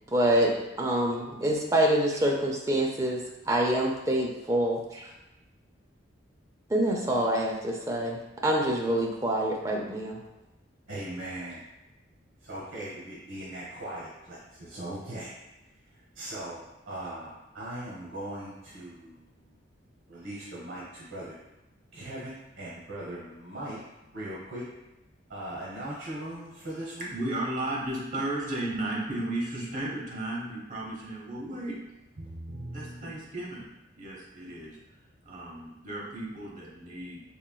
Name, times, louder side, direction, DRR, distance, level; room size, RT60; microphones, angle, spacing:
voice 1, 0.1-5.1 6.7-10.2, right 1 dB, 15° right, -1 dB, 0.4 m, -26 dB
voice 2, 10.9-11.6 12.4-15.3 16.1-16.6 16.8-19.3 20.1-21.3 21.9-23.8 24.1-24.6 25.3-27.1 32.2-33.1, right 1 dB, 80° right, -6 dB, 0.9 m, -39 dB
voice 3, 27.0-31.8 32.7-33.7 34.0-34.8 35.3-37.2, right 1 dB, 40° right, -4 dB, 0.9 m, -34 dB
4.4 x 3.2 x 2.2 m, 0.99 s
head